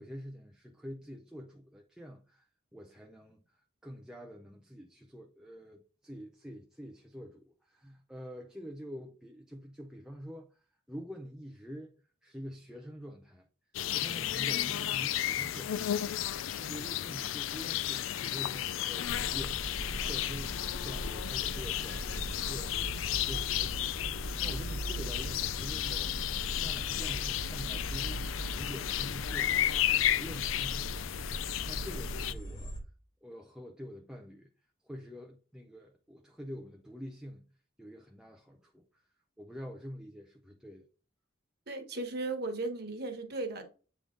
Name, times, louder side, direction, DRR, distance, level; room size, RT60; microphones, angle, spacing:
voice 1, 0.0-2.5 2.7-3.4 3.8-11.9 12.2-13.5 13.9-22.7 23.2-24.1 24.4-32.8 33.2-34.5 34.8-37.5 37.8-39.0 39.4-40.9, equal, 5° right, 0.5 m, -46 dB
sound 1, 13.7-32.3, left 12 dB, 85° left, 0.4 m, -33 dB
sound 2, 19.0-32.8, right 1 dB, 20° left, 1.4 m, -40 dB
voice 2, 41.7-43.7, right 2 dB, 50° right, 1.3 m, -36 dB
8.4 x 3.6 x 3.8 m
head